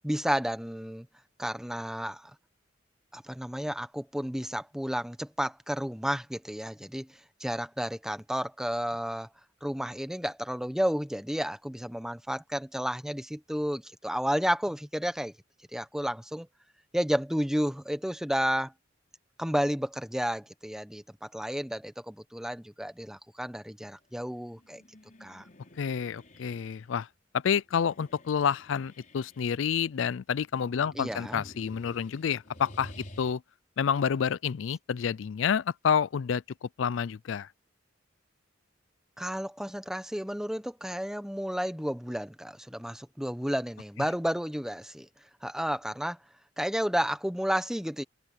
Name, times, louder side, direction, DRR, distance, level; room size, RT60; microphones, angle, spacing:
voice 1, 0.0-1.1 1.4-2.3 3.1-9.3 9.6-15.3 15.7-16.5 16.9-18.7 19.4-24.8 25.2-25.4 30.9-31.4 39.2-45.1 45.4-46.2 46.6-48.0, equal, 5° right, 1.1 m, -32 dB
sound 1, 24.5-26.8 27.7-29.7 30.4-33.3, left 1 dB, 45° left, 5.0 m, -51 dB
voice 2, 25.8-27.1 27.3-33.4 33.8-37.5, left 7 dB, 80° left, 0.4 m, -29 dB
open air
head